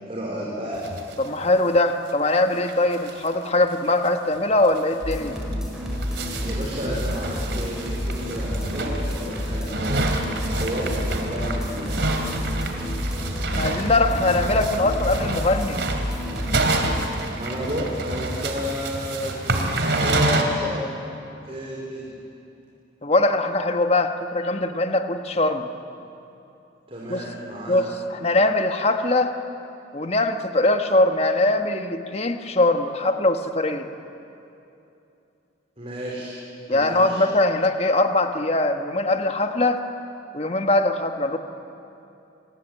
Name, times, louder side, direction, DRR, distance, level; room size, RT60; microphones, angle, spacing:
voice 1, 0.1-0.8 6.4-10.1 10.5-12.0 17.4-20.9 21.4-22.1 26.9-27.8 35.8-36.4 36.7-37.3, equal, 30° right, -4 dB, 4.2 m, -31 dB
sound 1, 0.8-1.3 1.6-1.7 1.9-2.0 2.4-2.5 2.7-3.3 3.6-3.7 4.1-4.2 4.6-4.8 5.4-20.4, right 2 dB, 65° right, 2.7 m, -28 dB
voice 2, 1.2-5.4 13.5-15.8 23.0-25.7 27.1-27.2 27.7-29.3 29.9-33.9 36.7-39.8 40.3-41.4, left 2 dB, 35° left, 6 dB, 1.3 m, -21 dB
sound 2, 5.0-17.0, equal, 5° right, 5.2 m, -29 dB
28.0 x 19.5 x 9.0 m, 2.8 s
head